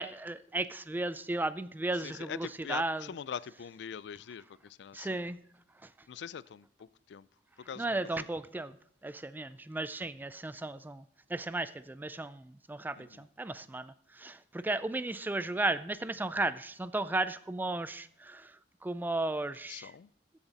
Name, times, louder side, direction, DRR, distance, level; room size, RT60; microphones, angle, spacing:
voice 1, 0.0-3.0 4.9-5.4 7.8-8.8 9.0-11.0 11.3-18.5 18.8-19.9, right 2 dB, 10° right, 15 dB, 0.3 m, -35 dB
voice 2, 1.9-5.3 6.1-7.3 7.6-8.0 13.0-13.2 19.7-20.1, left 7 dB, 70° left, 20 dB, 0.4 m, -43 dB
15.0 x 7.3 x 4.0 m, 0.64 s
head